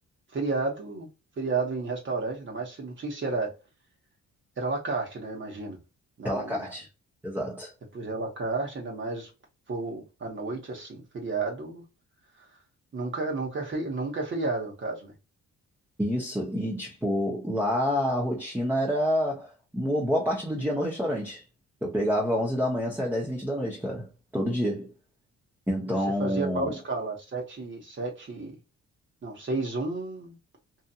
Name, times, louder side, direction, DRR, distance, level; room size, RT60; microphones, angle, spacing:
voice 1, 0.3-1.1 1.4-3.5 4.6-5.8 6.2-6.7 7.9-9.3 9.7-11.8 12.9-15.1 25.9-28.6 29.2-30.4, right 3 dB, 40° right, 1.1 m, -32 dB
voice 2, 6.2-6.9 7.2-7.7 16.0-21.4 21.8-24.9 25.7-26.7, equal, 5° right, 0.8 m, -28 dB
2.8 x 2.4 x 2.3 m
cardioid pair, 90°, 30 cm